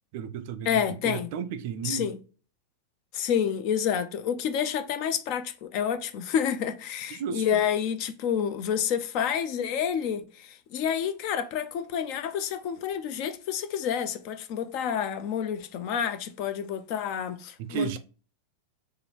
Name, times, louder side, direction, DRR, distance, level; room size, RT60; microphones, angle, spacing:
voice 1, 0.1-2.1 7.1-7.4 17.6-18.0, right 7 dB, 50° right, 0.4 m, -33 dB
voice 2, 0.7-1.3 1.8-2.2 3.1-18.0, left 8 dB, 45° left, 0.5 m, -29 dB
3.8 x 3.1 x 2.9 m
figure-of-eight pair, 90°, 0 cm